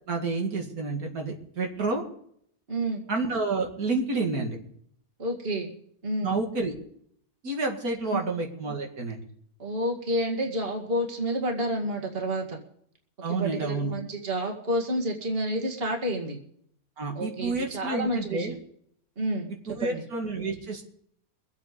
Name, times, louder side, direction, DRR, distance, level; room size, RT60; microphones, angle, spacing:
voice 1, 0.1-2.0 3.1-4.6 6.2-6.7 7.4-9.2 13.2-13.9 17.0-18.5 19.7-20.8, right 3 dB, 80° right, 1 dB, 2.6 m, -29 dB
voice 2, 2.7-3.0 5.2-5.7 6.0-6.4 8.1-8.2 9.6-12.6 13.4-16.4 17.1-18.5 19.2-20.0, right 1 dB, 40° right, 1 dB, 2.2 m, -29 dB
23.0 x 8.5 x 5.2 m, 0.67 s
omnidirectional pair, 1.5 m